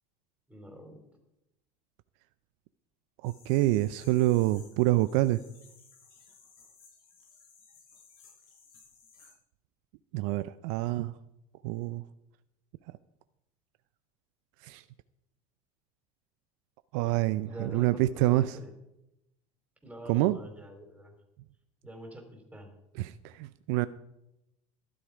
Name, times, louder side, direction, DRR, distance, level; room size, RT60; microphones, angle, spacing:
voice 1, 0.5-1.0 17.4-18.7 19.8-21.1 21.8-22.7, equal, 5° right, 3 dB, 4.2 m, -46 dB
sound 1, 3.2-9.3, left 5 dB, 80° left, 5.1 m, -58 dB
voice 2, 3.2-5.4 10.1-11.1 11.6-12.0 14.6-14.8 16.9-18.6 20.1-20.4 23.0-23.9, right 16 dB, 65° right, 14 dB, 0.6 m, -27 dB
12.5 x 11.5 x 5.1 m, 0.86 s
hypercardioid pair, 85°, 19 cm